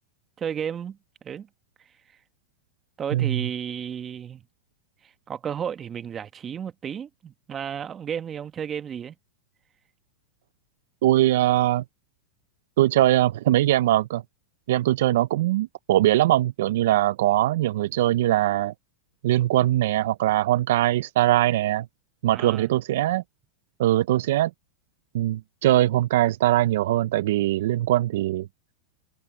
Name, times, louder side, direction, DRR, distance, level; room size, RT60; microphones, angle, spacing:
voice 1, 0.4-1.0 1.2-1.5 3.0-4.4 5.0-9.1 22.3-22.7, right 8 dB, 25° right, 1.4 m, -33 dB
voice 2, 3.1-3.4 11.0-11.8 12.8-14.2 14.7-18.7 19.2-21.9 22.2-23.2 23.8-24.5 25.1-28.5, right 14 dB, 70° right, 0.7 m, -21 dB
hypercardioid pair, 115°, 0 cm